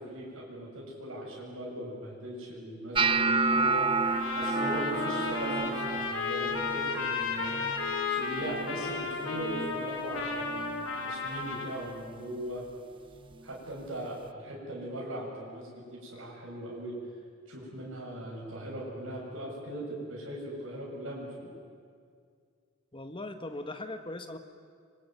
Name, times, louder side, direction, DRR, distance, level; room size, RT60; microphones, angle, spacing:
voice 1, 0.0-3.9 4.4-7.6 8.1-12.6 13.4-16.9 17.5-21.5, right 1 dB, 65° right, -3 dB, 7.3 m, -39 dB
sound 1, 2.9-9.0 9.3-9.8 10.2-10.7 11.4-11.6 13.3-13.4, right 3 dB, 25° right, 0.6 m, -31 dB
Trumpet, 4.0-11.8, left 4 dB, 70° left, 3.5 m, -33 dB
voice 2, 22.9-24.4, left 2 dB, 25° left, 7 dB, 1.6 m, -39 dB
26.0 x 23.5 x 9.5 m, 2.2 s
head